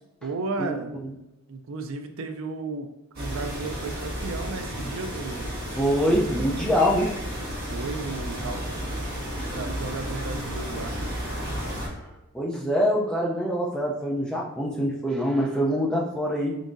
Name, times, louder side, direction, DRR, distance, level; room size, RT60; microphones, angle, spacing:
voice 1, 0.2-0.9 1.5-2.9 3.2-5.5 7.7-8.6 9.3-10.9, right 3 dB, 65° right, 6 dB, 0.4 m, -34 dB
sound 1, 3.1-11.9, equal, 45° right, 1.4 m, -32 dB
voice 2, 5.7-7.1 9.3-9.4 12.0-12.1 12.3-16.6, equal, 5° left, -3 dB, 0.4 m, -25 dB
3.9 x 3.5 x 2.5 m, 0.94 s
head